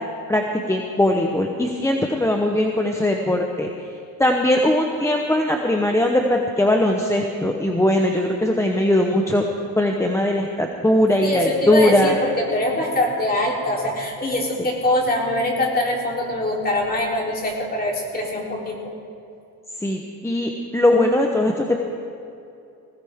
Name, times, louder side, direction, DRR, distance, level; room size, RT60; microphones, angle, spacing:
voice 1, 0.3-3.7 4.2-9.4 9.8-12.2 19.8-21.8, left 1 dB, 5° left, 1 dB, 0.9 m, -20 dB
voice 2, 11.2-18.8, left 1 dB, 25° left, -2 dB, 3.5 m, -23 dB
20.5 x 17.0 x 3.6 m, 2.7 s
cardioid pair, 120°, 37 cm